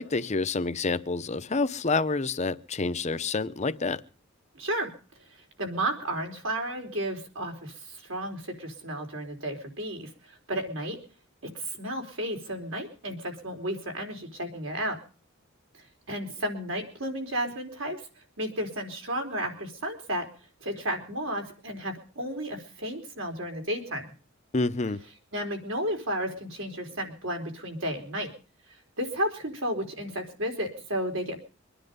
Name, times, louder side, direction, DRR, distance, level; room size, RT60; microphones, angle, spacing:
voice 1, 0.0-4.0 24.5-25.0, left 3 dB, 35° left, 0.8 m, -28 dB
voice 2, 4.6-4.9 5.6-10.1 10.5-11.0 11.5-15.0 16.1-18.0 18.4-20.3 20.6-24.1 25.3-28.3 29.0-31.4, right 1 dB, 70° right, 4.2 m, -32 dB
24.5 x 10.0 x 5.3 m
head